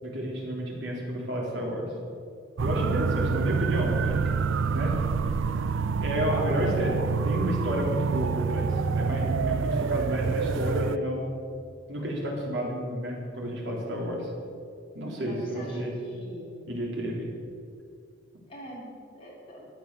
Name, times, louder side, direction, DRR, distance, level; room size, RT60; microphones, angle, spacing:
voice 1, 0.0-1.9 2.6-4.4 4.7-4.9 6.0-11.3 11.9-14.3 14.9-15.9 16.7-17.3, equal, 70° right, -2 dB, 3.6 m, -31 dB
sound 1, 2.6-11.0, right 5 dB, 90° right, 0.4 m, -27 dB
voice 2, 6.0-6.5 15.2-16.6 18.5-19.6, equal, 30° left, -5 dB, 4.3 m, -43 dB
14.0 x 10.5 x 6.9 m, 2.3 s
head